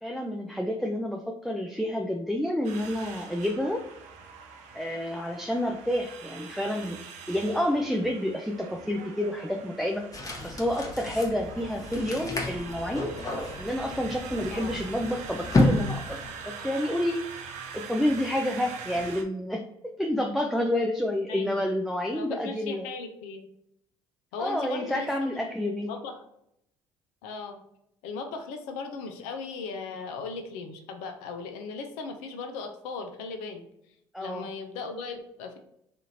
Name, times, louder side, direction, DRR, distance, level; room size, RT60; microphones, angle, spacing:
voice 1, 0.0-3.8 4.7-7.0 7.3-10.0 10.4-13.2 13.6-16.2 16.5-17.2 17.7-22.9 24.4-25.9 34.1-34.5, left 1 dB, ahead, 1 dB, 0.4 m, -29 dB
sound 1, 2.6-19.2, right 6 dB, 65° right, 0.5 m, -43 dB
sound 2, 10.1-16.4, left 2 dB, 25° left, 0.9 m, -30 dB
voice 2, 21.3-21.7 22.1-23.5 24.3-25.1 25.3-25.4 25.8-26.1 27.2-27.6 28.0-33.6 34.2-35.6, left 4 dB, 70° left, 5 dB, 0.5 m, -37 dB
2.8 x 2.5 x 2.7 m, 0.76 s
hypercardioid pair, 60°, 13 cm